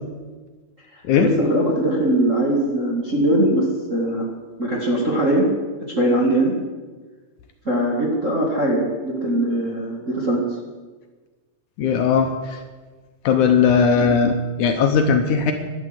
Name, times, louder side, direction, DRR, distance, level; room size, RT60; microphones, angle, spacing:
voice 1, 1.2-4.3 4.6-5.5 5.9-6.5 7.6-10.5 13.9-14.1, right 1 dB, 30° right, -3 dB, 1.6 m, -21 dB
voice 2, 11.8-12.3 13.3-15.5, left 6 dB, 70° left, 5 dB, 2.2 m, -18 dB
12.0 x 11.0 x 8.0 m, 1.4 s
omnidirectional pair, 4.1 m